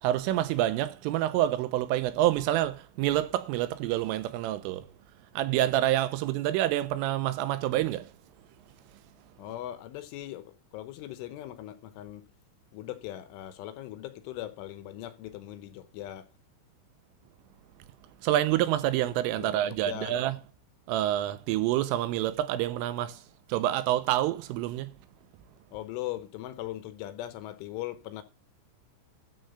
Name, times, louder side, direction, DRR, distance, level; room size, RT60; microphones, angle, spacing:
voice 1, 0.0-4.9 5.4-8.1 18.2-20.4 20.9-23.2 23.5-24.9, right 13 dB, 80° right, 3.3 m, -27 dB
voice 2, 9.4-12.3 12.7-16.3 19.4-20.2 25.7-28.2, left 13 dB, 75° left, 3.3 m, -39 dB
13.0 x 4.5 x 8.0 m
omnidirectional pair, 5.9 m